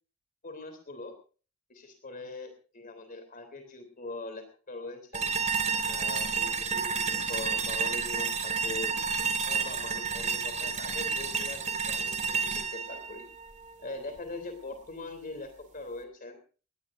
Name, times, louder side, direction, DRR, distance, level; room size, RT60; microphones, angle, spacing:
voice 1, 0.4-1.1 1.7-5.3 5.9-8.9 9.4-13.3 13.8-16.4, left 2 dB, 40° left, 7 dB, 3.3 m, -42 dB
sound 1, 5.1-14.2, right 5 dB, 35° right, 2.4 m, -30 dB
20.0 x 19.0 x 2.7 m, 0.38 s
head